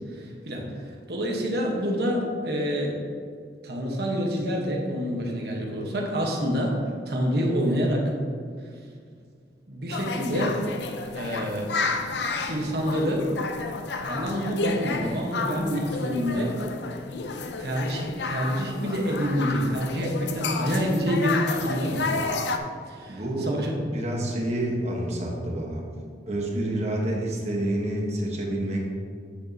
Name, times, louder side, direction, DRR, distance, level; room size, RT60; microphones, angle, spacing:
voice 1, 0.1-0.7 1.1-3.0 3.6-6.8 7.1-8.1 9.7-10.6 11.1-11.7 12.5-13.3 14.1-16.6 17.6-22.3 22.9-23.8, equal, 65° right, -1 dB, 1.3 m, -27 dB
sound 1, 9.9-22.6, left 3 dB, 75° left, 0.5 m, -31 dB
voice 2, 23.1-23.5 23.9-25.8 26.3-28.9, right 1 dB, 40° right, -2 dB, 1.3 m, -28 dB
9.9 x 6.3 x 2.9 m, 2.1 s
head